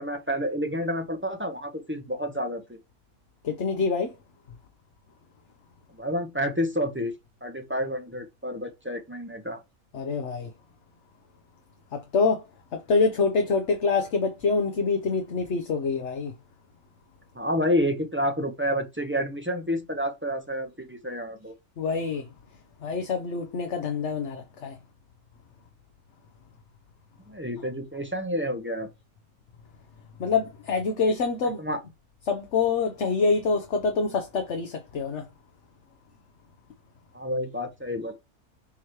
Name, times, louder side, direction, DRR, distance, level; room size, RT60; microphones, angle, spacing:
voice 1, 0.0-2.8 5.9-7.1 7.4-9.6 17.3-21.5 27.3-28.9 31.6-31.8 37.1-38.1, equal, 10° right, 0.8 m, -29 dB
voice 2, 3.4-4.1 9.9-10.5 11.9-12.4 12.7-16.3 21.8-22.3 22.8-24.8 30.2-31.6 32.3-35.3, left 4 dB, 55° left, 1.1 m, -26 dB
7.1 x 3.1 x 4.6 m
omnidirectional pair, 1.6 m